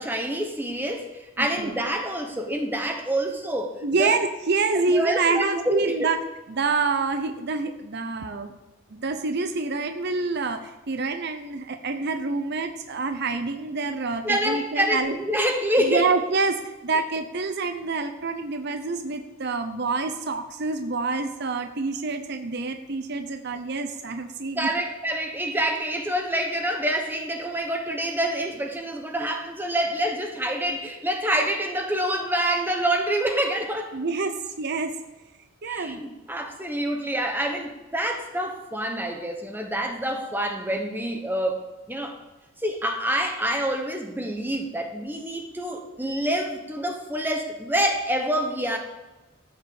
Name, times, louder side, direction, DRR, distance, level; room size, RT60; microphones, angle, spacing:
voice 1, 0.0-4.1 4.9-5.9 14.2-16.0 24.5-33.9 35.6-41.6 41.9-42.2 42.6-48.8, right 1 dB, 10° right, 3 dB, 1.2 m, -27 dB
voice 2, 1.4-1.7 3.8-6.2 6.5-8.5 8.9-15.2 15.8-24.7 33.9-34.9 35.6-36.0, right 4 dB, 50° right, 7 dB, 0.7 m, -27 dB
14.5 x 6.7 x 7.0 m, 1.1 s
head